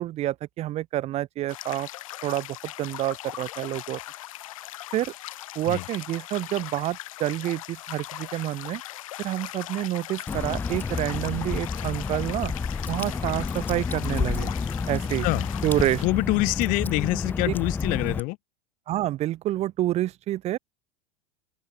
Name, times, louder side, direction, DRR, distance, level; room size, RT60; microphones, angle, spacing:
voice 1, 0.0-1.9 2.2-4.0 4.9-5.1 5.5-8.8 9.2-12.5 12.9-14.5 14.9-15.3 15.6-16.0 17.5-17.6 18.9-20.6, right 14 dB, 40° right, 0.9 m, -28 dB
sound 1, 1.5-16.1, left 16 dB, 80° left, 1.6 m, -40 dB
Water / Drip, 10.3-18.2, left 5 dB, 10° left, 0.3 m, -30 dB
voice 2, 16.0-18.4, left 25 dB, 55° left, 1.0 m, -25 dB
open air
supercardioid pair, 110°, 17 cm